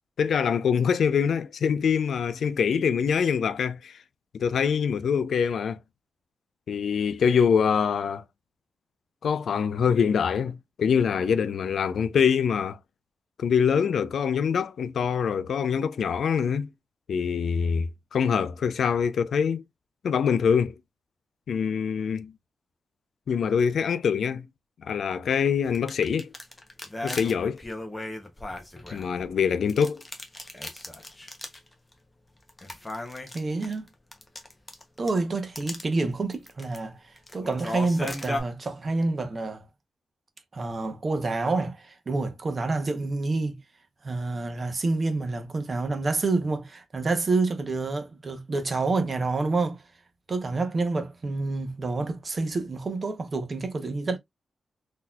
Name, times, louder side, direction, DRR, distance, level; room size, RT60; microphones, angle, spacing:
voice 1, 0.2-4.0 4.3-5.8 6.7-8.2 9.2-12.8 13.4-16.7 17.1-19.6 20.0-20.7 21.5-22.3 23.3-24.5 24.8-26.3 27.0-27.6 28.9-30.0, left 7 dB, 65° left, 0.3 m, -24 dB
sound 1, 25.6-29.3 29.7-31.7 31.9-32.0 32.5-35.2 35.6-35.8 36.3-36.8 37.2-38.4, left 1 dB, 15° left, 0.7 m, -36 dB
voice 2, 33.3-33.8 35.0-37.0 37.3-39.6 40.5-43.6 44.0-49.8 50.3-54.2, right 3 dB, 30° right, 0.7 m, -28 dB
3.9 x 2.7 x 2.2 m
wide cardioid pair, 175°, 0 cm